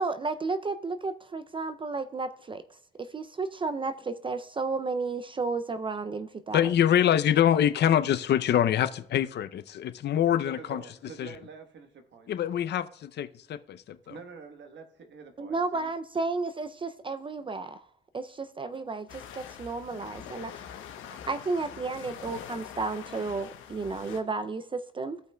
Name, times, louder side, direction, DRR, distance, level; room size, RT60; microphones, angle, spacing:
voice 1, 0.0-6.6 15.4-17.9 18.1-20.8 21.2-25.2, right 3 dB, 25° right, 0.4 m, -33 dB
voice 2, 6.5-10.8 11.2-11.3 12.3-14.1, left 10 dB, 60° left, 0.5 m, -25 dB
voice 3, 10.4-12.3 14.0-15.9, right 5 dB, 65° right, 1.2 m, -46 dB
sound 1, 19.1-24.2, left 9 dB, 85° left, 1.0 m, -44 dB
16.0 x 5.4 x 2.2 m
cardioid pair, 90°, 20 cm